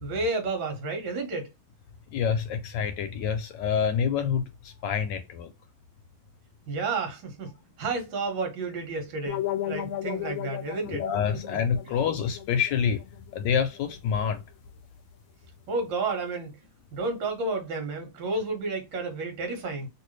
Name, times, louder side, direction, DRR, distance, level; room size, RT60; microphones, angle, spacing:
voice 1, 0.0-1.5 6.7-11.1 15.7-16.6 16.9-19.9, right 3 dB, 75° right, 1.7 m, -31 dB
voice 2, 2.1-5.5 10.9-13.0 13.3-14.4, left 7 dB, 70° left, 1.2 m, -27 dB
sound 1, 9.3-14.2, left 12 dB, 90° left, 1.4 m, -36 dB
3.2 x 2.8 x 3.1 m
omnidirectional pair, 2.1 m